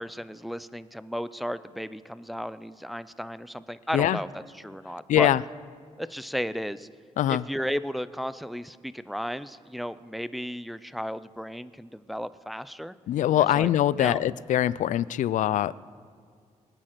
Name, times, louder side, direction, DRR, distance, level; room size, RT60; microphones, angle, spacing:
voice 1, 0.0-5.3 6.0-6.9 7.3-12.9 13.3-13.7 14.0-14.2, equal, ahead, 14 dB, 0.4 m, -34 dB
voice 2, 5.1-5.4 7.2-7.4 13.1-15.7, left 12 dB, 85° left, 19 dB, 0.4 m, -23 dB
23.5 x 9.0 x 5.9 m, 2.1 s
cardioid pair, 115°, 13 cm